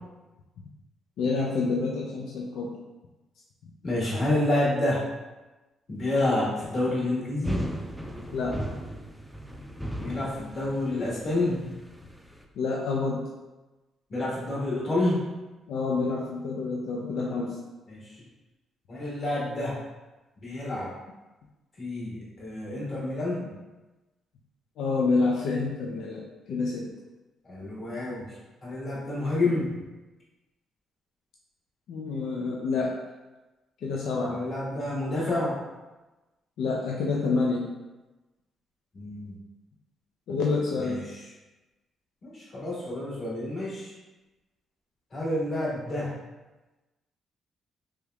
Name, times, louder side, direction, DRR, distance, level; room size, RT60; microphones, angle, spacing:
voice 1, 1.2-2.7 8.3-8.6 12.6-13.2 15.7-17.6 24.8-26.2 26.5-26.9 31.9-32.9 33.8-34.4 36.6-37.7 40.3-41.0, left 4 dB, 80° left, -2 dB, 0.4 m, -28 dB
voice 2, 3.8-5.0 5.9-7.7 10.0-11.7 14.1-15.2 17.9-18.1 18.9-19.8 20.4-20.9 21.8-23.4 27.4-28.3 28.6-29.7 34.3-35.5 38.9-39.4 40.8-41.2 42.2-43.9 45.1-46.1, left 2 dB, 50° left, -7 dB, 1.5 m, -28 dB
sound 1, 7.4-12.4, right 1 dB, 5° right, 0.3 m, -36 dB
3.3 x 3.0 x 2.3 m, 1.1 s
cardioid pair, 90°, 0 cm